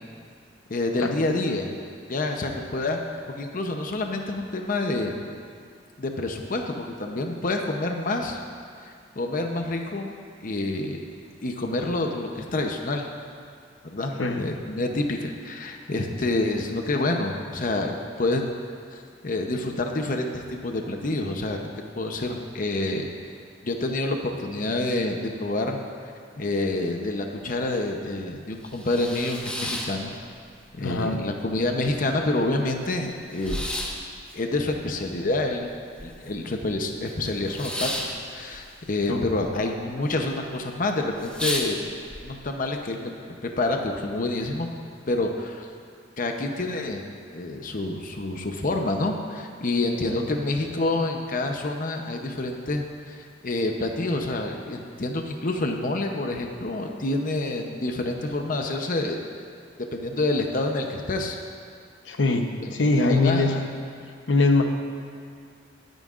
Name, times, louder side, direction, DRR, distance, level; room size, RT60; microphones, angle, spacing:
voice 1, 0.7-1.7 2.1-3.0 3.4-5.2 6.0-8.4 8.8-10.1 10.4-11.0 11.4-13.1 13.8-18.4 18.9-21.6 22.0-23.1 23.6-25.8 26.4-30.1 30.8-33.7 34.3-35.7 36.0-41.9 42.2-43.1 43.4-44.7 45.1-45.7 46.2-47.0 47.3-53.2 53.4-59.2 59.9-61.4 62.6-62.7 63.1-63.5, left 2 dB, 45° left, 3 dB, 0.8 m, -28 dB
voice 2, 14.2-14.5 30.8-31.3 39.1-39.3 50.1-50.3 62.1-63.6 64.3-64.6, left 3 dB, 85° left, 4 dB, 0.9 m, -22 dB
sound 1, 28.6-30.6 31.0-31.7 32.0-32.1 32.3-36.5 36.7-39.5 39.8-40.3 40.7-40.8 41.1-42.2, left 1 dB, 5° left, 1.1 m, -33 dB
21.5 x 9.2 x 2.5 m, 2.2 s
head